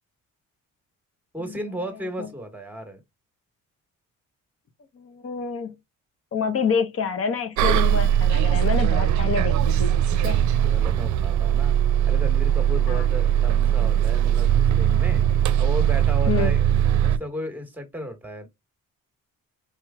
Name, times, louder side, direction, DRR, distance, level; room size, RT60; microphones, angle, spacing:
voice 1, 1.3-3.0 10.5-11.7 12.0-15.2 15.6-16.7 17.0-18.5, equal, 5° right, 1.5 m, -34 dB
voice 2, 4.9-5.7 6.3-10.4 12.9-13.1 16.3-16.5, left 6 dB, 50° left, 1.0 m, -27 dB
Bus, 7.6-17.2, right 10 dB, 75° right, 0.5 m, -20 dB
4.6 x 3.0 x 2.3 m
cardioid pair, 90°, 30 cm